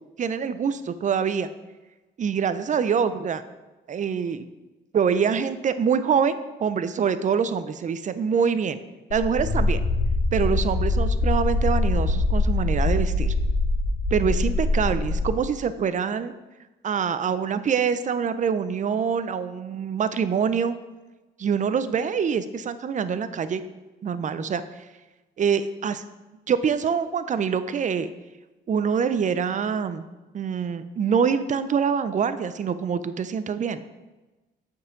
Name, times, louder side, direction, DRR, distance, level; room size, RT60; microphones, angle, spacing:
voice 1, 0.2-1.5 2.2-3.4 3.9-4.5 4.9-8.8 9.1-9.8 10.3-13.3 14.1-16.3 16.8-20.7 21.4-23.6 24.0-24.9 25.4-26.0 26.5-28.1 28.7-30.0 30.3-33.8, right 6 dB, 40° right, 12 dB, 0.5 m, -25 dB
sound 1, 9.1-15.2, left 2 dB, 85° left, 1.5 m, -23 dB
8.0 x 5.5 x 3.8 m, 1.1 s
cardioid pair, 90°, 20 cm